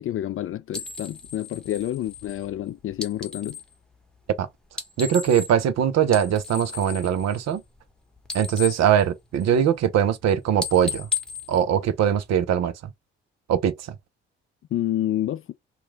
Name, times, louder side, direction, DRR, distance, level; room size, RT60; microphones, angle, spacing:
voice 1, 0.0-3.6 14.7-15.5, left 12 dB, 45° left, 0.4 m, -28 dB
sound 1, 0.7-3.7 4.6-5.8 6.0-7.9 8.2-9.7 10.1-10.3 10.6-12.4, left 5 dB, 5° left, 1.0 m, -35 dB
voice 2, 5.0-7.6 8.3-11.1 11.5-12.7 13.5-13.7, right 9 dB, 60° right, 0.7 m, -21 dB
3.0 x 2.4 x 3.3 m
hypercardioid pair, 45°, 30 cm